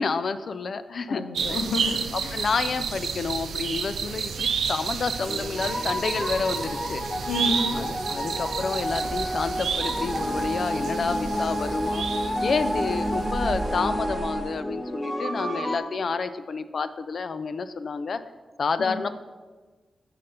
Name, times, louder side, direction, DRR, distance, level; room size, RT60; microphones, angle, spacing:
voice 1, 0.0-1.2 1.5-1.6 2.1-7.0 7.7-12.1 12.4-18.2 18.6-19.1, left 4 dB, 60° left, 12 dB, 0.5 m, -29 dB
voice 2, 1.1-2.5 7.3-7.7 11.0-11.1 18.8-19.0, left 3 dB, 85° left, 5 dB, 0.9 m, -30 dB
sound 1, 1.3-13.0 13.3-13.4, right 6 dB, 85° right, 0.6 m, -31 dB
sound 2, 5.3-15.8, equal, ahead, 1.7 m, -30 dB
Bird, 8.4-14.6, right 2 dB, 30° right, 1.0 m, -37 dB
9.9 x 4.1 x 5.5 m, 1.4 s
cardioid pair, 70°, 0 cm